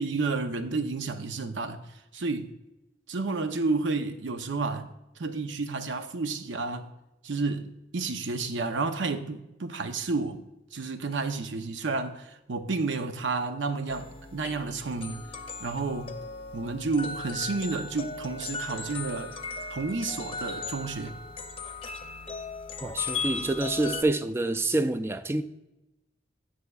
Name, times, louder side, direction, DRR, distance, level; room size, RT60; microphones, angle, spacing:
voice 1, 0.0-1.8 2.1-2.5 3.1-4.9 5.2-6.9 7.2-7.7 7.9-10.4 10.7-15.3 15.6-16.2 16.5-19.3 19.7-21.1, right 3 dB, 90° right, 0.7 m, -31 dB
sound 1, 13.9-24.0, left 4 dB, 30° left, 0.6 m, -37 dB
voice 2, 22.8-25.4, right 2 dB, 15° right, 0.3 m, -27 dB
17.5 x 6.3 x 2.3 m
head